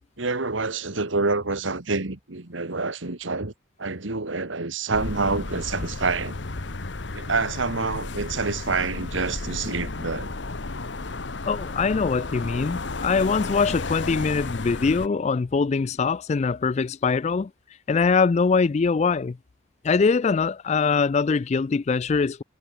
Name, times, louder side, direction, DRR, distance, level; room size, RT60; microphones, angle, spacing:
voice 1, 0.2-3.5 3.8-6.4 7.1-10.3, right 3 dB, 75° right, 1.8 m, -27 dB
sound 1, 4.9-15.1, left 3 dB, 60° left, 1.2 m, -33 dB
voice 2, 11.5-17.5 17.9-19.4 19.8-22.4, left 5 dB, 35° left, 0.3 m, -23 dB
head